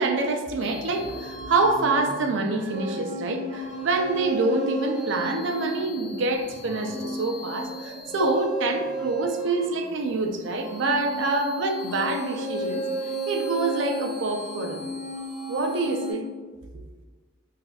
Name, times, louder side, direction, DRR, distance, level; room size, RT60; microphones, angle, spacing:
voice 1, 0.0-12.8 13.3-14.9 15.5-16.2, right 3 dB, 65° right, 4 dB, 0.4 m, -26 dB
sound 1, 0.6-16.1, equal, 65° left, 1.0 m, -34 dB
4.0 x 2.4 x 2.3 m, 1.4 s
head